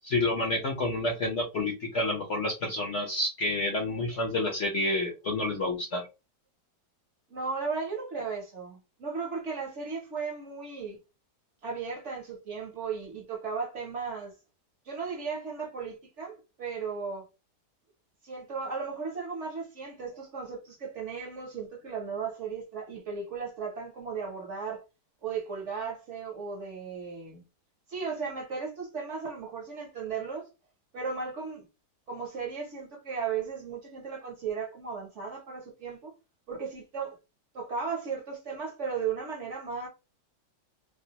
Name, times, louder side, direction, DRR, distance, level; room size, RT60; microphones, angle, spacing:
voice 1, 0.0-6.0, left 2 dB, 55° left, 0.9 m, -29 dB
voice 2, 7.3-11.0 11.6-14.3 14.8-17.3 18.2-24.8 25.2-27.4 27.9-30.5 30.9-31.6 32.1-36.1 36.5-37.2 37.5-39.9, right 5 dB, 50° right, 1.1 m, -36 dB
3.4 x 2.3 x 2.8 m
omnidirectional pair, 1.8 m